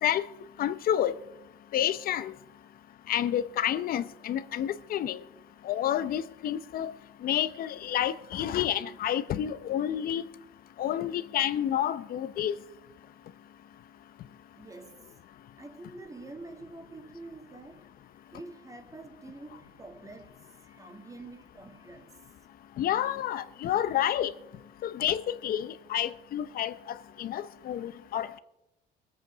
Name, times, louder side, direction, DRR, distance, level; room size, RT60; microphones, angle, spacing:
voice 1, 0.6-1.1 1.7-2.3 3.1-5.2 5.7-6.9 7.2-10.2 10.8-12.6 22.8-24.3 24.8-28.3, left 11 dB, 60° left, 0.7 m, -29 dB
voice 2, 14.6-15.1 15.6-22.4, right 2 dB, 20° right, 1.9 m, -47 dB
19.5 x 8.2 x 6.1 m
cardioid pair, 110°, 17 cm